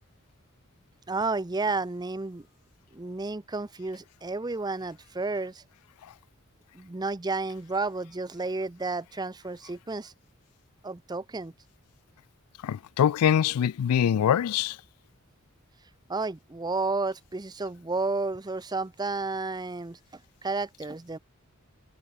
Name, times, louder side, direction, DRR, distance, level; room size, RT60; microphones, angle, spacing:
voice 1, 1.1-2.4 2.9-5.6 6.7-10.1 10.8-11.5 16.1-20.0 20.4-21.2, right 3 dB, 20° right, 0.6 m, -31 dB
voice 2, 12.6-14.8, left 9 dB, 85° left, 0.3 m, -23 dB
head